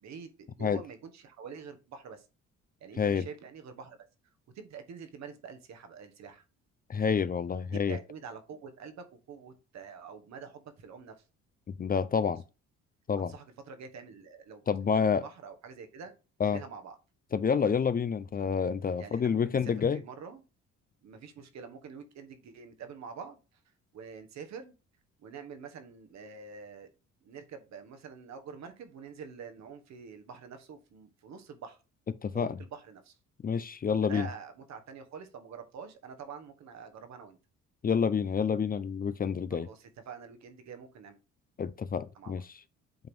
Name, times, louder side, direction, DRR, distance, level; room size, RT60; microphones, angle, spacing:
voice 1, 0.0-2.3 2.8-4.0 4.5-6.4 7.7-11.1 13.3-14.6 14.9-16.1 16.4-17.0 19.0-20.4 21.0-23.4 23.9-24.7 25.2-26.9 27.2-31.8 32.3-33.2 34.0-37.4 39.5-41.2 42.1-42.3, right 6 dB, 65° right, 1.5 m, -46 dB
voice 2, 6.9-8.0 11.8-12.4 13.1-13.3 14.7-15.2 16.4-16.6 17.3-20.0 32.2-32.6 33.4-34.3 37.8-39.7 41.6-42.5, left 6 dB, 30° left, 0.5 m, -28 dB
7.8 x 3.0 x 5.4 m
cardioid pair, 80°, 29 cm